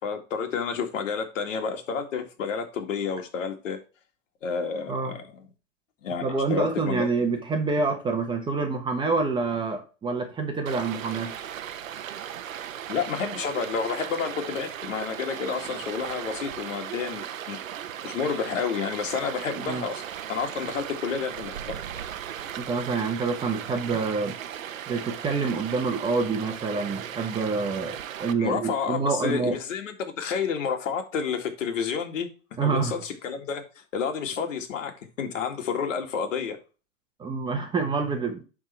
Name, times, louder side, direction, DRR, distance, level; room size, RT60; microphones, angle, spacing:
voice 1, 0.0-3.8 4.4-5.5 6.0-7.1 12.9-17.6 18.0-20.0 20.3-21.7 28.4-32.3 32.6-34.9 35.2-36.6, left 6 dB, 70° left, 2.2 m, -30 dB
voice 2, 6.2-11.3 19.6-19.9 22.7-24.4 24.9-29.6 32.6-32.9 37.2-38.4, right 4 dB, 10° right, 1.0 m, -27 dB
Stream, 10.7-28.3, right 10 dB, 85° right, 1.0 m, -37 dB
11.0 x 3.8 x 4.4 m
hypercardioid pair, 140°, 39 cm